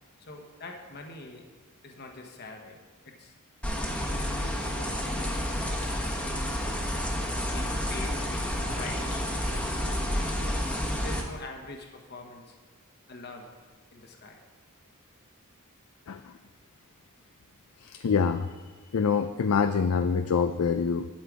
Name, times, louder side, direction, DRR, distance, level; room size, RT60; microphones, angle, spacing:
voice 1, 0.2-1.5 1.8-2.8 3.0-3.3 4.1-6.3 7.2-12.6 13.1-13.5 13.9-14.4, left 2 dB, 50° left, 2 dB, 1.1 m, -44 dB
sound 1, 3.6-11.2, equal, 5° left, 1.1 m, -30 dB
voice 2, 17.8-18.5 18.9-21.1, left 6 dB, 75° left, 9 dB, 0.4 m, -25 dB
11.5 x 7.5 x 4.8 m, 1.3 s
head